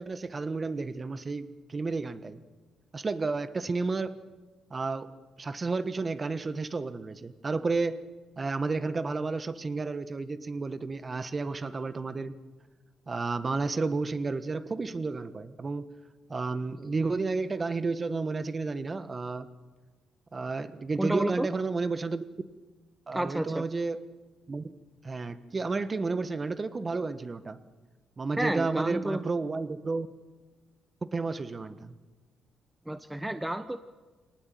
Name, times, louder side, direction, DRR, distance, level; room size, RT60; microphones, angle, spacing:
voice 1, 0.0-2.4 2.9-4.2 4.7-8.0 8.4-12.3 13.1-15.9 16.3-19.5 20.3-22.2 23.1-24.0 24.5-24.7 25.0-27.6 28.2-30.1 31.1-31.9, right 3 dB, 30° right, 13 dB, 1.4 m, -31 dB
voice 2, 21.0-21.5 23.1-23.6 28.4-29.2 32.9-33.8, right 1 dB, 10° right, 11 dB, 0.9 m, -30 dB
24.5 x 19.0 x 9.2 m, 1.3 s
cardioid pair, 90°, 0 cm